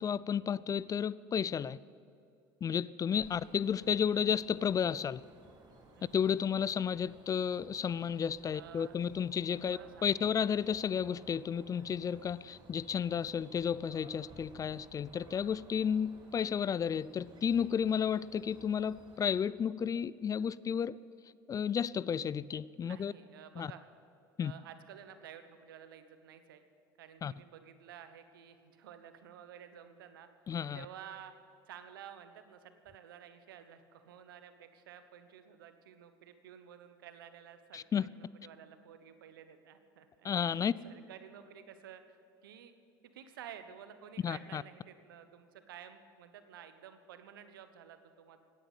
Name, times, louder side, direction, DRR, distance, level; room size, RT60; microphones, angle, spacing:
voice 1, 0.0-1.8 2.6-5.2 6.1-21.0 21.5-23.1 23.6-23.7 24.4-24.5 27.2-27.3 30.5-30.8 37.7-38.1 40.2-40.7 44.2-44.6, left 7 dB, 30° left, 21 dB, 0.4 m, -32 dB
sound 1, 3.1-19.4, right 2 dB, 40° right, 3.8 m, -58 dB
voice 2, 3.2-4.2 5.9-6.3 8.4-9.0 9.6-10.3 22.8-23.9 24.4-26.6 27.0-30.3 30.7-31.3 31.7-42.7 43.1-48.4, right 9 dB, 80° right, 10 dB, 1.2 m, -52 dB
17.0 x 9.9 x 8.4 m, 2.6 s
hypercardioid pair, 70°, 11 cm